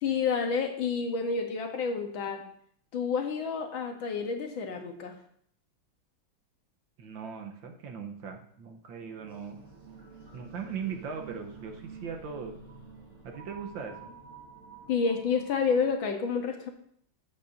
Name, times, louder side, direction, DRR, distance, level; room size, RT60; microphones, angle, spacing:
voice 1, 0.0-2.4 2.9-5.1 14.9-16.7, left 5 dB, 75° left, 4 dB, 1.9 m, -29 dB
voice 2, 7.0-9.6 10.3-12.6 13.2-14.1, right 6 dB, 70° right, 4 dB, 1.7 m, -39 dB
sound 1, 9.2-15.9, right 5 dB, 40° right, 1.9 m, -49 dB
13.0 x 7.8 x 2.7 m, 0.64 s
omnidirectional pair, 2.2 m